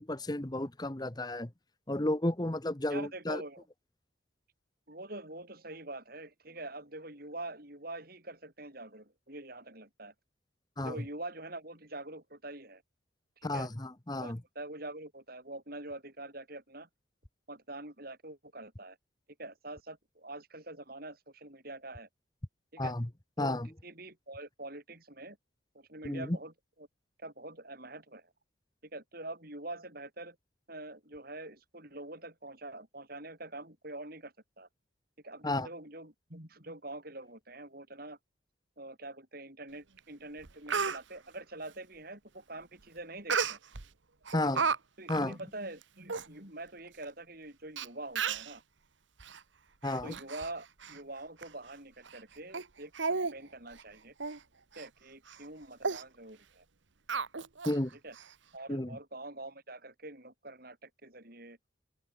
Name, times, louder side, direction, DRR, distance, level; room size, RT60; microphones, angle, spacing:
voice 1, 0.0-1.5 1.9-3.4 10.8-11.0 13.4-14.4 22.8-23.1 23.4-23.7 26.0-26.4 35.4-35.7 44.3-44.6 45.1-45.3 49.8-50.1 57.7-57.9 58.7-59.0, left 1 dB, 20° left, 1.0 m, -32 dB
voice 2, 2.9-3.7 4.9-10.1 10.8-12.8 13.4-13.7 14.2-16.9 17.5-19.0 19.4-22.1 22.7-22.9 23.4-25.4 25.7-26.5 26.8-26.9 27.2-28.3 28.8-30.4 30.7-34.7 35.2-38.2 38.8-43.6 44.5-44.7 45.0-48.6 50.0-54.1 54.8-56.6 58.0-58.2 58.5-61.6, right 2 dB, 50° right, 7.6 m, -45 dB
Speech, 40.0-40.1 40.4-41.0 43.3-43.8 44.3-44.8 45.1-45.2 45.8-45.9 46.1-46.3 47.0-47.1 47.8-47.9 48.1-48.5 49.2-49.4 49.8-50.5 50.8-51.0 51.4-51.5 52.0-52.2 52.5-52.6 52.9-53.3 53.7-53.8 54.2-54.4 54.7-54.9 55.3-55.4 55.8-56.0 57.1-57.8 58.1-58.2, right 5 dB, 70° right, 1.3 m, -33 dB
open air
head